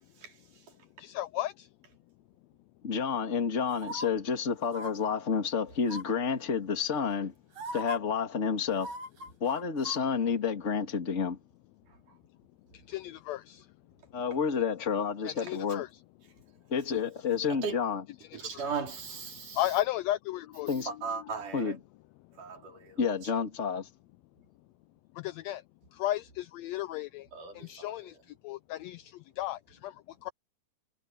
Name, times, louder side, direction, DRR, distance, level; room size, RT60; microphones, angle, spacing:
voice 1, 1.0-1.7 12.9-13.6 15.2-15.9 19.5-20.7 25.2-25.6 26.0-27.3 27.5-28.1 28.4-29.9 30.2-30.3, left 14 dB, 90° left, 1.5 m, -34 dB
voice 2, 2.8-7.3 7.7-8.9 9.4-11.4 14.1-15.8 16.7-18.0 20.7-20.9 21.5-21.8 23.0-23.9, left 6 dB, 25° left, 2.3 m, -30 dB
sound 1, 3.7-4.1 4.7-4.9 5.8-6.2 7.1-7.2 7.6-8.0 8.7-10.0 10.3-10.4, equal, 65° right, 9.6 m, -39 dB
voice 3, 18.3-19.8 20.9-21.8 22.4-23.0 27.3-28.2, right 5 dB, 85° right, 5.2 m, -38 dB
omnidirectional pair, 3.5 m